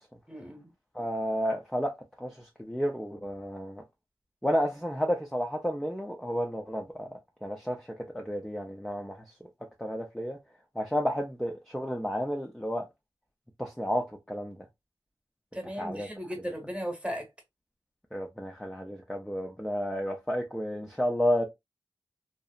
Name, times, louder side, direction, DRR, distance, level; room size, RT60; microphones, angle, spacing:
voice 1, 0.3-0.7 15.5-17.3, equal, 15° right, 1.1 m, -36 dB
voice 2, 0.9-3.8 4.4-9.2 9.8-10.4 10.8-12.9 13.6-14.6 15.8-16.1 18.1-21.4, equal, 5° left, 0.5 m, -31 dB
2.7 x 2.0 x 2.4 m
cardioid pair, 45°, 9 cm